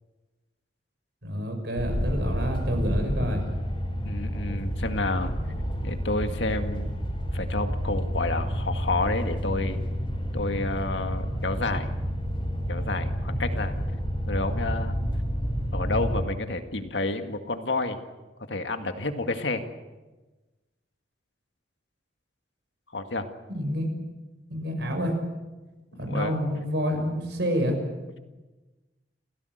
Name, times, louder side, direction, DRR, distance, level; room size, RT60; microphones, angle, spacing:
voice 1, 1.2-3.4 23.5-24.0 24.5-25.2 26.0-27.8, equal, 70° right, 5 dB, 6.0 m, -28 dB
sound 1, 1.8-16.2, equal, 30° left, 4.1 m, -29 dB
voice 2, 4.0-5.3 5.8-6.9 7.3-9.8 10.3-11.9 12.7-13.7 14.3-15.0 15.7-18.0 18.5-19.6 22.9-23.3 25.9-26.4, left 2 dB, 80° left, 6 dB, 2.0 m, -30 dB
29.0 x 16.0 x 8.0 m, 1.2 s
head